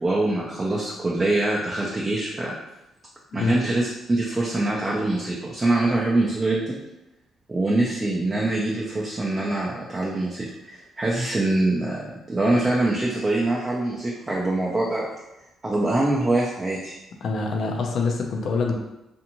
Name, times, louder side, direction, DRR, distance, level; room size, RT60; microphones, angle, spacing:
voice 1, 0.0-2.5 3.3-6.8 7.5-15.1 15.6-16.9, right 2 dB, 20° right, -4 dB, 0.5 m, -24 dB
voice 2, 3.3-3.6 17.2-18.7, left 4 dB, 65° left, 2 dB, 0.5 m, -25 dB
2.5 x 2.5 x 2.9 m, 0.92 s
cardioid pair, 90°, 0 cm